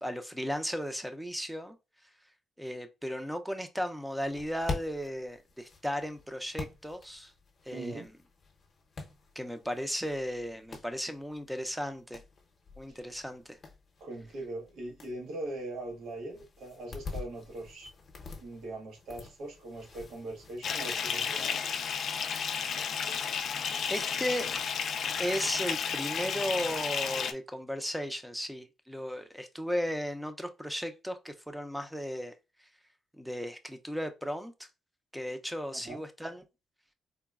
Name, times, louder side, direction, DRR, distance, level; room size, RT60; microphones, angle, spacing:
voice 1, 0.0-1.8 2.6-7.3 7.7-8.1 9.4-12.2 12.8-13.6 23.9-24.5 25.2-32.3 33.2-34.7 35.1-36.4, equal, 5° right, 0.5 m, -35 dB
sound 1, 4.2-20.6, left 4 dB, 45° left, 0.7 m, -46 dB
voice 2, 7.7-8.0 12.9-13.0 14.0-17.9 18.4-21.6 35.7-36.0, right 2 dB, 80° right, 1.1 m, -41 dB
Bathtub (filling or washing) / Fill (with liquid), 20.6-27.3, left 7 dB, 60° left, 0.3 m, -32 dB
3.9 x 2.1 x 2.3 m
cardioid pair, 90°, 0 cm